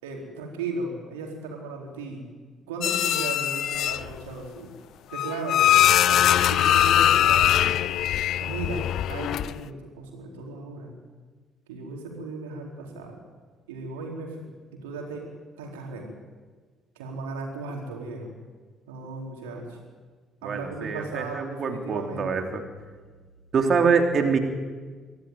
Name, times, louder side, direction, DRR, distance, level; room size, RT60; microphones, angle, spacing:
voice 1, 0.0-2.3 2.7-4.7 5.1-5.7 6.1-8.0 8.4-10.9 11.7-13.2 13.7-15.2 15.6-16.1 17.0-18.3 18.9-19.8 20.4-22.5, right 3 dB, 75° right, 0 dB, 4.5 m, -36 dB
sound 1, 2.8-4.2 5.1-9.6, left 12 dB, 60° left, 0.6 m, -21 dB
voice 2, 20.4-22.6 23.5-24.4, right 5 dB, 45° right, 4 dB, 3.2 m, -24 dB
24.5 x 15.5 x 9.4 m, 1.4 s
figure-of-eight pair, 45°, 0 cm